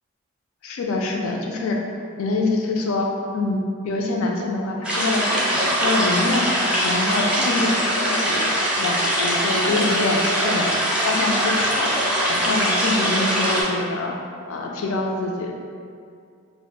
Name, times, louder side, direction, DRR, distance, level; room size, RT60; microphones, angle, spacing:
voice 1, 0.6-1.8 2.2-3.1 3.3-6.5 6.8-7.7 8.0-8.5 8.8-10.7 11.0-11.9 12.3-14.2 14.5-15.6, left 2 dB, 80° left, 1 dB, 0.4 m, -25 dB
sound 1, 4.8-13.6, equal, 5° right, 0.3 m, -22 dB
2.3 x 2.0 x 3.2 m, 2.3 s
head